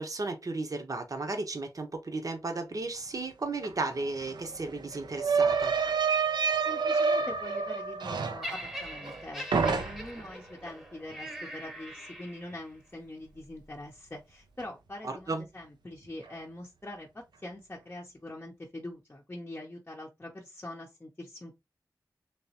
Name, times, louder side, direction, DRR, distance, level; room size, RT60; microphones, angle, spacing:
voice 1, 0.0-5.8 15.0-15.4, right 3 dB, 50° right, 0.8 m, -34 dB
sound 1, 3.6-3.7 4.0-9.2 9.5-10.3, right 5 dB, 85° right, 0.5 m, -28 dB
voice 2, 6.6-21.6, left 1 dB, 25° left, 0.7 m, -43 dB
Laughter, 8.4-12.7 13.5-13.6, equal, ahead, 1.0 m, -42 dB
3.4 x 3.0 x 2.8 m
wide cardioid pair, 80°, 7 cm